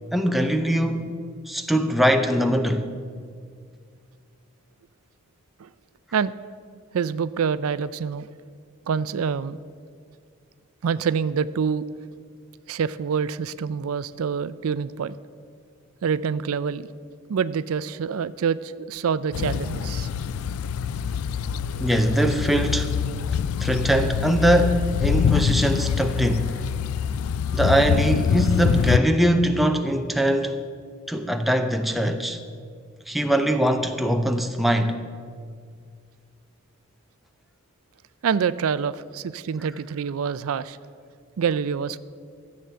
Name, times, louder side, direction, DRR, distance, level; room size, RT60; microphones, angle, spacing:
voice 1, 0.1-1.1 1.5-2.9 21.8-22.9 23.6-26.6 27.5-30.5 31.1-32.4 33.1-35.0, right 1 dB, ahead, 0.5 m, -22 dB
voice 2, 6.9-8.3 8.9-9.6 10.8-11.9 12.7-15.2 16.0-16.9 17.3-20.1 38.2-40.8 41.4-42.0, right 6 dB, 80° right, 0.4 m, -26 dB
sound 1, 19.3-29.0, left 7 dB, 75° left, 0.3 m, -25 dB
13.5 x 7.7 x 6.8 m
head